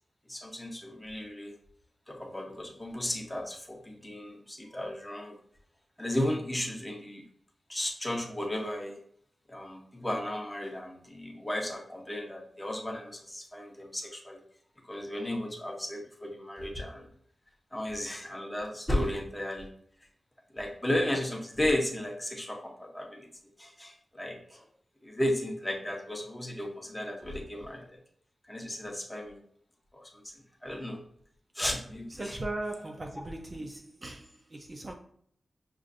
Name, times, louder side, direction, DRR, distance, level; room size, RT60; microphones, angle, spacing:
voice 1, 0.3-1.5 2.1-5.4 6.0-7.2 7.7-9.0 9.5-14.4 14.9-17.1 17.7-19.7 20.5-23.3 23.6-24.6 25.0-27.9 28.5-29.4 29.9-30.2 30.6-31.0 31.5-32.4, left 1 dB, 15° left, 0.7 m, -34 dB
voice 2, 32.2-34.9, right 2 dB, 30° right, 0.4 m, -38 dB
6.2 x 2.4 x 2.5 m
wide cardioid pair, 135°, 0 cm